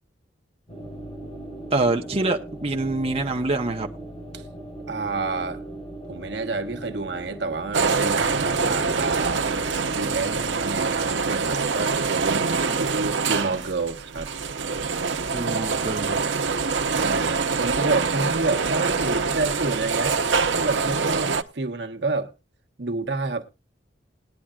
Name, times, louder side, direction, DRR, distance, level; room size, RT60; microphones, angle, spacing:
sound 1, 0.7-10.6, right 1 dB, 35° left, 6.8 m, -38 dB
voice 1, 1.7-3.9 15.3-16.2, right 2 dB, 35° right, 0.9 m, -25 dB
voice 2, 4.9-5.6 6.1-9.5 10.0-14.3 16.9-20.2 20.5-22.3 22.8-23.7, right 3 dB, 70° right, 1.2 m, -29 dB
sound 2, 7.7-21.4, right 4 dB, 90° right, 0.8 m, -25 dB
19.5 x 9.9 x 2.4 m
head